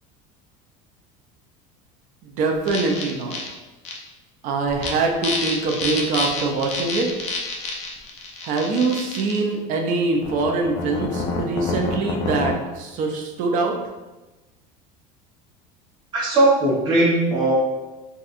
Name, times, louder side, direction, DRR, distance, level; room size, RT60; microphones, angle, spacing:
voice 1, 2.2-3.4 4.4-7.1 8.4-13.8, right 3 dB, 45° right, 2 dB, 0.5 m, -23 dB
sound 1, 2.7-3.5 3.8-4.0 4.7-4.9 5.2-9.4 10.2-12.5, left 3 dB, 35° left, 0.5 m, -28 dB
voice 2, 16.1-17.5, right 2 dB, 25° right, -7 dB, 0.9 m, -18 dB
4.1 x 2.3 x 2.5 m, 1.1 s
cardioid pair, 155°, 18 cm